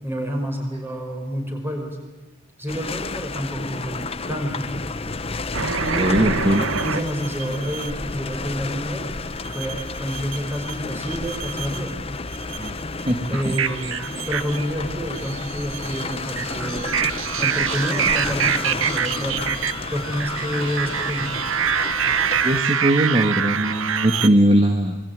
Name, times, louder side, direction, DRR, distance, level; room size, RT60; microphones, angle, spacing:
voice 1, 0.0-2.0 2.6-4.7 5.8-6.4 6.8-9.1 9.5-12.0 13.3-17.0 17.4-19.6 19.9-21.5, equal, 10° right, 2 dB, 5.4 m, -29 dB
sound 1, 2.7-22.6, left 3 dB, 25° left, 0.9 m, -31 dB
sound 2, 5.5-7.9 9.4-10.7 11.1-11.9 12.3-24.3, right 7 dB, 70° right, 1.1 m, -26 dB
voice 2, 6.0-6.6 12.6-12.7 13.1-13.2 13.4-13.5 22.4-25.0, right 1 dB, 25° right, 5 dB, 1.7 m, -19 dB
27.0 x 22.5 x 9.6 m, 1.1 s
head